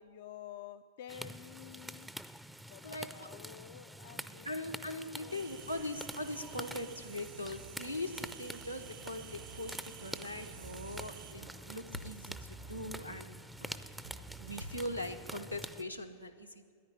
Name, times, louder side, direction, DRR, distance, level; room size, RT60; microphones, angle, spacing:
voice 1, 0.0-2.1 2.7-4.5 5.2-5.8, left 11 dB, 55° left, 10 dB, 0.4 m, -50 dB
sound 1, 1.1-15.8, right 1 dB, 5° right, 0.5 m, -47 dB
voice 2, 2.8-3.3 4.4-13.4 14.4-16.7, left 1 dB, 90° left, 3 dB, 1.0 m, -41 dB
sound 2, 5.3-11.3, right 11 dB, 55° right, 0.5 m, -51 dB
sound 3, 10.2-15.2, right 4 dB, 75° right, 2.5 m, -53 dB
10.0 x 10.0 x 9.9 m, 2.1 s
figure-of-eight pair, 90°, 0 cm